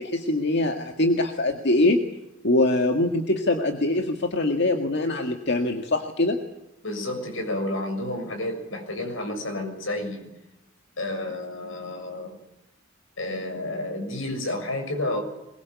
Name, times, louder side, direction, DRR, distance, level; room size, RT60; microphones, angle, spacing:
voice 1, 0.0-2.0 2.4-6.4, left 2 dB, 60° left, 5 dB, 1.9 m, -23 dB
voice 2, 6.8-10.3 11.0-12.4 13.2-15.2, left 1 dB, 85° left, 4 dB, 6.8 m, -30 dB
23.0 x 22.0 x 8.3 m, 0.88 s
head